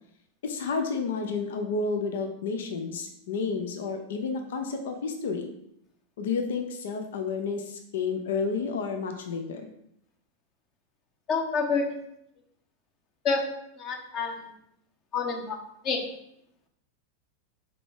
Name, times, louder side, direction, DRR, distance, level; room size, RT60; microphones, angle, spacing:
voice 1, 0.4-5.5 6.2-9.6, left 4 dB, 60° left, 5 dB, 0.7 m, -31 dB
voice 2, 11.3-11.8 13.2-13.4 13.8-14.3 15.1-15.6 15.8-16.0, left 5 dB, 35° left, 2 dB, 1.3 m, -27 dB
5.0 x 4.6 x 4.8 m, 0.78 s
figure-of-eight pair, 90°, 0 cm